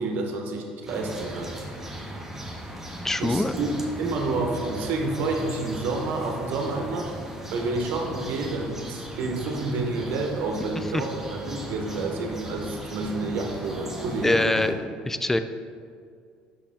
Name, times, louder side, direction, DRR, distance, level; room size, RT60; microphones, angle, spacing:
voice 1, 0.0-1.5 3.2-3.7 4.0-7.1 7.5-14.7, right 3 dB, 70° right, 2 dB, 0.9 m, -29 dB
sound 1, 0.9-14.7, equal, 10° right, 1.1 m, -37 dB
voice 2, 3.0-3.6 10.9-11.0 14.2-14.8 15.1-15.4, left 2 dB, 10° left, 10 dB, 0.3 m, -23 dB
5.6 x 5.0 x 3.5 m, 2.2 s
supercardioid pair, 75°, 3 cm